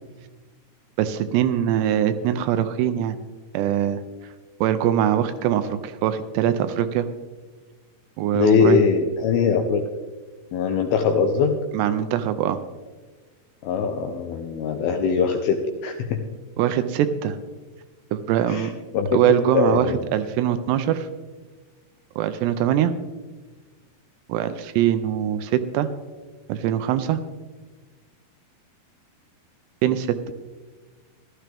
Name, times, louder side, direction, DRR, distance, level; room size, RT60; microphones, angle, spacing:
voice 1, 1.0-3.2 3.5-4.0 4.6-7.1 8.2-8.8 11.7-12.6 16.6-17.4 18.1-18.8 19.1-21.1 22.2-22.9 24.3-25.9 26.5-27.2 29.8-30.2, right 10 dB, 80° right, 11 dB, 2.6 m, -22 dB
voice 2, 8.3-9.8 10.5-11.6 13.6-16.2 18.5-19.2 19.5-20.0, left 6 dB, 80° left, 5 dB, 2.2 m, -21 dB
15.5 x 12.5 x 3.4 m, 1.3 s
omnidirectional pair, 5.1 m